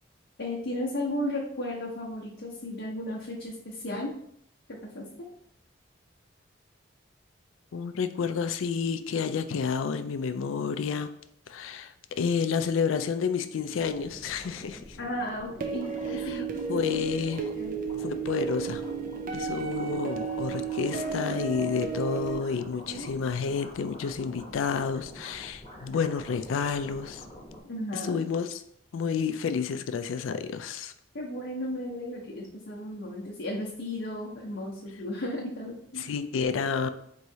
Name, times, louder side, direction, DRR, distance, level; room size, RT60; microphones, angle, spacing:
voice 1, 0.4-4.1 4.7-5.1 15.0-17.1 17.6-17.7 22.7-23.1 27.6-28.3 31.1-36.1, left 1 dB, 65° left, -5 dB, 0.7 m, -35 dB
voice 2, 7.7-11.1 11.5-15.0 16.3-16.4 16.7-17.4 18.0-18.8 19.3-27.2 27.9-28.6 28.9-30.9 36.0-36.9, left 6 dB, 85° left, 10 dB, 0.4 m, -30 dB
sound 1, 13.8-27.6, equal, 30° left, 0.9 m, -46 dB
sound 2, 15.6-22.4, right 6 dB, 45° right, 0.4 m, -33 dB
4.6 x 3.1 x 2.7 m, 0.68 s
head